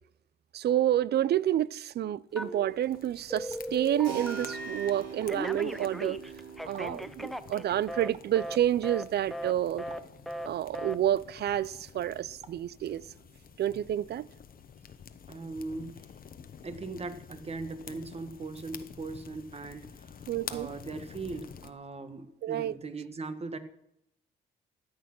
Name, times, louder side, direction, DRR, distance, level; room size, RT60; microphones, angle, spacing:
voice 1, 0.5-6.2 6.6-9.8 10.5-13.0 13.6-14.3 20.3-20.7 22.4-22.8, right 11 dB, 55° right, 0.4 m, -29 dB
Telephone, 2.4-3.0 3.3-4.9 5.3-8.1 8.4-8.6 8.8-9.0 9.3-9.5 9.8-10.0 10.3-10.5 10.7-11.0, equal, ahead, 0.6 m, -37 dB
sound 1, 2.8-21.7, left 7 dB, 45° left, 1.0 m, -49 dB
Keyboard (musical), 4.0-12.4, right 7 dB, 80° right, 3.8 m, -46 dB
voice 2, 15.3-16.1 16.4-20.2 20.5-23.6, right 3 dB, 30° right, 1.4 m, -40 dB
13.0 x 8.7 x 6.1 m
cardioid pair, 90°, 20 cm